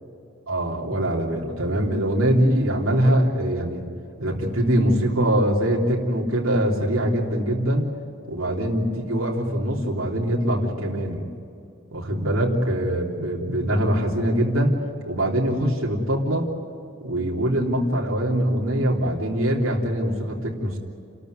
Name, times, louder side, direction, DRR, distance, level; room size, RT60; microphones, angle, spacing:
voice 1, 0.5-3.8 4.2-7.9 8.3-11.2 11.9-14.8 15.1-16.5 17.0-20.8, right 1 dB, 70° right, -2 dB, 3.4 m, -23 dB
29.5 x 13.5 x 9.6 m, 2.6 s
head